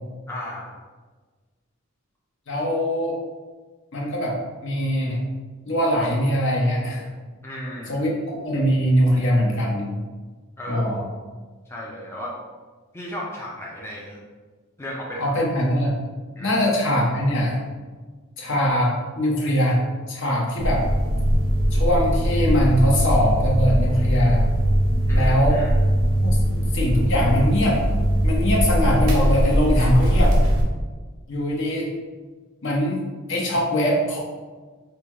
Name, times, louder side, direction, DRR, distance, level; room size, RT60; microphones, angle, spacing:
voice 1, 0.3-0.7 7.4-8.0 10.6-10.8 11.7-12.3 12.9-14.2 14.8-15.3 16.3-16.5 25.1-25.7, equal, 10° left, -4 dB, 0.5 m, -34 dB
voice 2, 2.5-3.2 3.9-5.2 5.6-7.1 7.9-9.9 10.7-11.0 15.2-16.0 16.4-17.6 18.4-19.8 20.1-20.9 21.7-24.4 25.1-25.6 26.2-27.8 28.2-30.4 31.3-31.9 32.6-33.0 33.3-34.2, equal, 60° left, -3 dB, 0.9 m, -22 dB
sound 1, 20.6-30.6, equal, 85° right, 0.7 m, -20 dB
4.8 x 2.3 x 2.9 m, 1.4 s
head